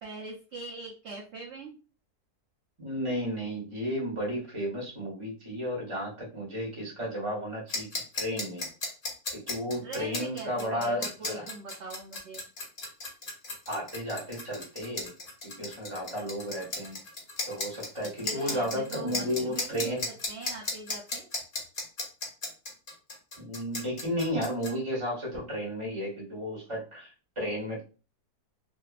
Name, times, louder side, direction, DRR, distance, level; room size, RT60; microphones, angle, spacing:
voice 1, 0.0-1.8 9.8-12.4 18.2-21.3, right 3 dB, 60° right, -3 dB, 0.7 m, -42 dB
voice 2, 2.8-7.9 8.1-8.7 9.3-11.4 13.7-15.1 15.4-17.0 17.5-20.0 23.4-27.8, equal, 25° right, -3 dB, 0.9 m, -33 dB
sound 1, 7.7-24.7, left 2 dB, 40° left, 0.5 m, -35 dB
2.7 x 2.3 x 2.3 m, 0.34 s
omnidirectional pair, 1.7 m